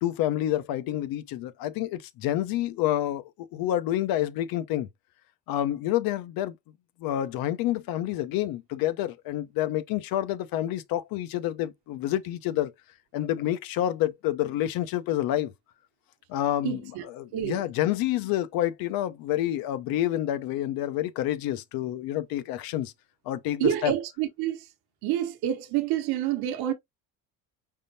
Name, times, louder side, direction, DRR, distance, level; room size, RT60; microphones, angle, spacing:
voice 1, 0.0-4.9 5.5-6.6 7.0-12.7 13.1-15.5 16.3-22.9 23.3-23.9, left 13 dB, 65° left, 0.7 m, -28 dB
voice 2, 16.6-17.0 17.3-17.6 23.6-24.6 25.0-26.7, right 12 dB, 80° right, 1.0 m, -28 dB
5.3 x 3.6 x 2.7 m
cardioid pair, 165°, 37 cm